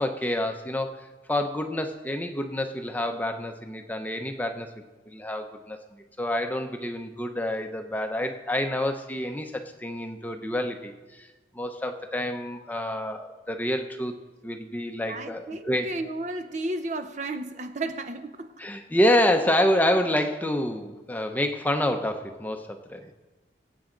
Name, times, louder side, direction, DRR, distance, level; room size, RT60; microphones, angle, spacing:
voice 1, 0.0-5.8 6.2-11.3 11.5-14.2 14.4-15.9 18.6-23.1, left 1 dB, 10° left, 0.7 m, -28 dB
voice 2, 15.1-18.5, right 2 dB, 40° right, 0.6 m, -33 dB
22.5 x 8.5 x 3.9 m
head